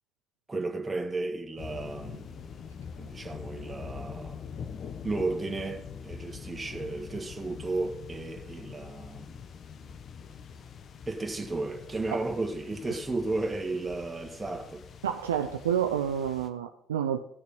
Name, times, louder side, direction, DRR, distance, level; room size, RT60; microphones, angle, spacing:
voice 1, 0.5-2.6 3.0-4.4 5.0-9.4 11.1-14.8, right 3 dB, 20° right, 1.5 m, -34 dB
sound 1, 1.6-16.5, left 6 dB, 55° left, 0.9 m, -44 dB
voice 2, 15.0-17.2, right 9 dB, 90° right, 0.4 m, -29 dB
14.0 x 6.5 x 5.3 m
hypercardioid pair, 50°, 0 cm